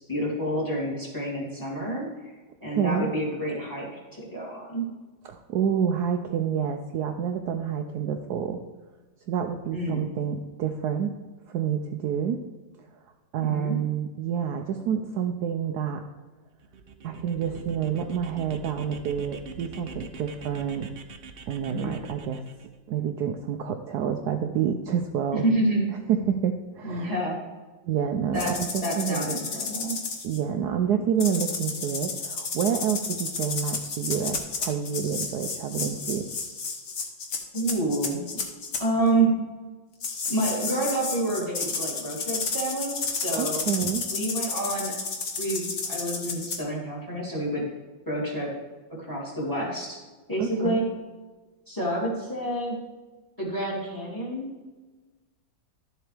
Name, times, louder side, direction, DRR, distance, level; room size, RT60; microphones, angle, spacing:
voice 1, 0.0-2.3 2.6-3.9 4.1-4.9 9.7-10.1 13.4-13.8 21.7-22.0 25.3-25.9 26.8-27.4 28.3-28.5 28.8-30.0 37.5-38.3 38.8-39.3 40.3-43.8 44.1-45.0 45.4-47.6 48.1-48.5 49.0-50.0 50.3-50.9 51.7-52.8 53.4-54.5, right 1 dB, 10° left, -4 dB, 2.8 m, -28 dB
voice 2, 2.8-3.1 5.2-8.6 9.3-11.2 11.5-12.4 13.3-16.0 17.0-20.9 21.5-22.4 22.9-25.4 26.1-27.2 27.9-29.3 30.2-36.3 43.3-44.1 50.4-50.8, right 8 dB, 70° right, 5 dB, 1.1 m, -28 dB
sound 1, 16.6-22.7, right 5 dB, 85° right, 0.5 m, -44 dB
sound 2, 28.3-30.4 31.2-38.8 40.0-46.6, left 4 dB, 45° left, 1.2 m, -32 dB
12.0 x 7.4 x 3.4 m, 1.3 s
omnidirectional pair, 2.0 m